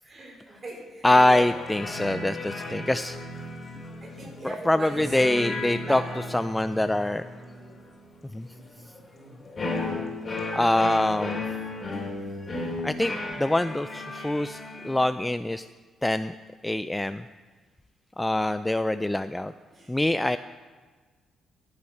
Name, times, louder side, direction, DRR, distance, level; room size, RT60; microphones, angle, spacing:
voice 1, 0.0-1.4 4.0-5.2 5.8-6.3 19.7-20.0, right 2 dB, 35° right, -1 dB, 4.9 m, -40 dB
voice 2, 1.0-3.2 4.4-6.0 6.3-7.2 8.3-8.5 10.5-11.5 12.4-12.6 12.8-15.7 16.0-16.4 16.6-17.2 18.2-19.5 19.9-20.4, left 1 dB, 10° left, 11 dB, 0.4 m, -24 dB
sound 1, 1.1-15.1, left 2 dB, 30° left, 3.9 m, -35 dB
14.5 x 9.7 x 5.9 m, 1.4 s
cardioid pair, 90°, 0 cm